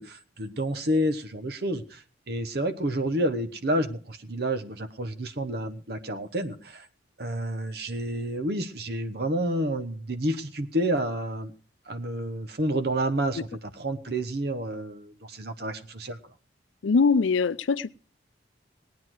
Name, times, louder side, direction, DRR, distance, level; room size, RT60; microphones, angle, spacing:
voice 1, 0.0-6.9 7.2-11.5 11.9-13.5 13.8-16.2, right 1 dB, 55° right, 1.1 m, -29 dB
voice 2, 16.8-17.9, left 4 dB, 85° left, 0.5 m, -22 dB
18.5 x 9.5 x 4.6 m
head